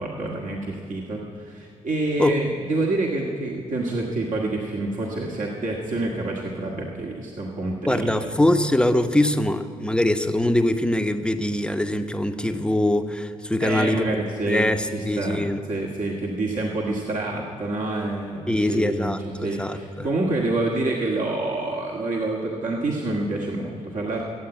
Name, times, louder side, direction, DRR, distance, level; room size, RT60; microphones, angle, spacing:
voice 1, 0.0-8.3 13.6-24.3, right 2 dB, 50° right, -2 dB, 1.9 m, -27 dB
voice 2, 7.9-14.1 14.4-15.6 18.5-20.1, left 1 dB, 5° left, 7 dB, 1.0 m, -23 dB
15.0 x 8.7 x 9.0 m, 2.2 s
hypercardioid pair, 40°, 17 cm